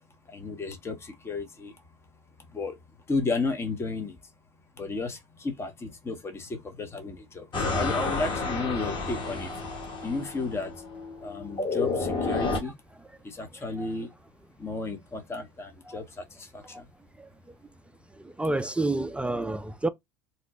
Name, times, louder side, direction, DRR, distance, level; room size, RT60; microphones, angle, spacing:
voice 1, 0.3-1.0 1.2-1.7 2.5-2.7 3.1-4.1 4.8-5.2 5.4-9.5 10.0-10.7 11.2-12.7 13.2-14.1 14.6-16.0, left 3 dB, 20° left, 0.9 m, -32 dB
sound 1, 7.5-12.6, left 3 dB, 40° left, 1.4 m, -30 dB
voice 2, 18.2-19.9, right 2 dB, 10° right, 0.3 m, -29 dB
2.9 x 2.1 x 4.0 m
hypercardioid pair, 80°, 13 cm